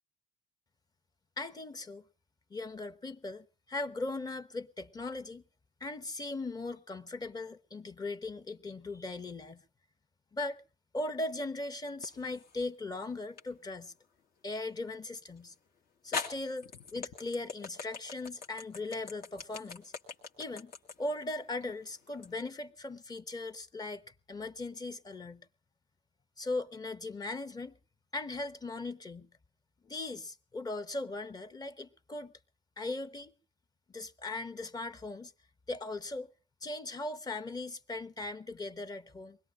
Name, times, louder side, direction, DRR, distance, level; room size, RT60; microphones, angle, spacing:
voice 1, 1.4-2.0 2.5-5.4 5.8-9.6 10.3-10.6 10.9-13.9 14.4-15.5 16.0-19.9 20.4-20.7 21.0-25.4 26.4-27.8 28.1-29.3 29.8-32.3 32.8-33.3 33.9-35.3 35.7-36.3 36.6-39.4, left 2 dB, 25° left, 0.9 m, -39 dB
sound 1, 12.0-12.6 13.4-13.5 15.4-15.5 16.1-22.3, left 5 dB, 65° left, 2.1 m, -41 dB
24.0 x 20.5 x 2.5 m
cardioid pair, 110°, 17 cm